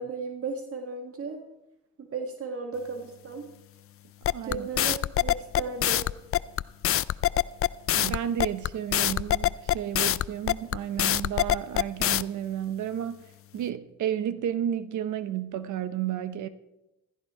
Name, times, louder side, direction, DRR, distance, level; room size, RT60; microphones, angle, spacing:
voice 1, 0.0-1.4 2.0-3.5 4.4-6.1, right 4 dB, 50° right, 1.9 m, -35 dB
sound 1, 4.2-12.2, left 12 dB, 50° left, 0.5 m, -24 dB
voice 2, 4.3-4.7 7.9-13.2 13.5-16.5, right 10 dB, 75° right, 1.1 m, -32 dB
15.0 x 14.5 x 4.9 m
cardioid pair, 90°, 30 cm